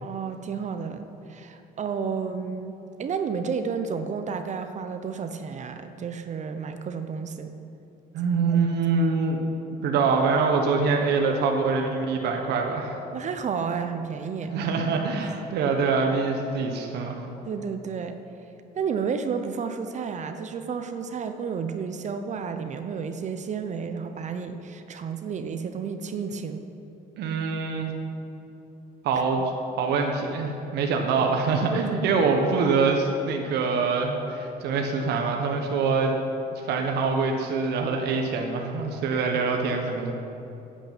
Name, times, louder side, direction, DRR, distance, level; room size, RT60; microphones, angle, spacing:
voice 1, 0.0-7.5 8.4-8.6 13.1-14.6 15.2-15.4 17.4-18.2 18.8-26.6 29.4-29.5 31.7-32.1, right 6 dB, 45° right, 8 dB, 0.9 m, -31 dB
voice 2, 8.1-9.4 9.8-13.0 14.5-17.2 27.2-27.9 29.0-29.4 29.8-36.1 36.5-40.1, right 4 dB, 75° right, 2 dB, 1.4 m, -24 dB
11.0 x 9.2 x 9.1 m, 2.9 s
cardioid pair, 110°, 17 cm